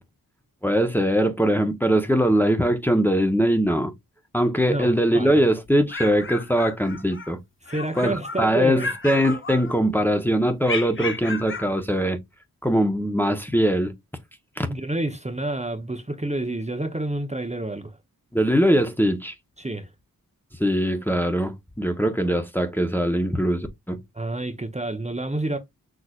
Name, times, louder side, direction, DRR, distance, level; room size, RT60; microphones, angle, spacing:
voice 1, 0.6-3.9 4.3-7.4 8.0-12.2 12.6-13.9 14.6-14.7 18.3-19.3 20.6-24.0, equal, 5° left, 1.1 m, -21 dB
voice 2, 4.6-5.4 7.6-8.9 14.7-18.0 19.6-19.9 24.1-25.6, right 2 dB, 20° right, 1.0 m, -29 dB
sound 1, 5.7-7.3 7.7-8.5 8.8-10.0 10.6-11.7, left 3 dB, 35° left, 1.0 m, -33 dB
6.3 x 3.4 x 2.5 m
cardioid pair, 45°, 36 cm